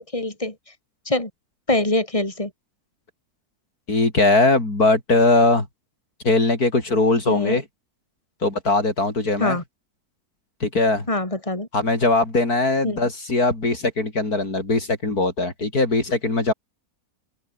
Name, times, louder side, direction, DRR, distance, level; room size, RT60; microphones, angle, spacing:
voice 1, 0.1-0.5 1.1-1.3 1.7-2.5 7.3-7.6 9.4-9.6 11.1-11.7 12.8-13.0, left 2 dB, 20° left, 4.8 m, -23 dB
voice 2, 3.9-5.7 6.2-7.6 8.4-9.6 10.6-11.1 11.7-16.5, left 2 dB, 70° left, 5.2 m, -20 dB
open air
omnidirectional pair, 1.7 m